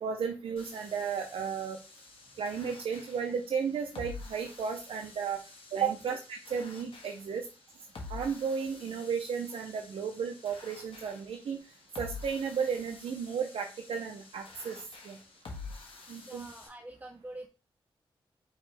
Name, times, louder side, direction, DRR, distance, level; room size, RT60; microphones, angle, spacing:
voice 1, 0.0-1.8 2.4-5.4 5.7-7.4 8.1-11.6 12.0-15.2 16.1-16.5, right 6 dB, 85° right, 3 dB, 0.6 m, -34 dB
sound 1, 0.6-16.7, left 3 dB, 75° left, 1.3 m, -48 dB
voice 2, 16.2-17.5, right 1 dB, 15° right, 5 dB, 0.5 m, -46 dB
5.2 x 3.1 x 3.3 m, 0.31 s
cardioid pair, 65°, 9 cm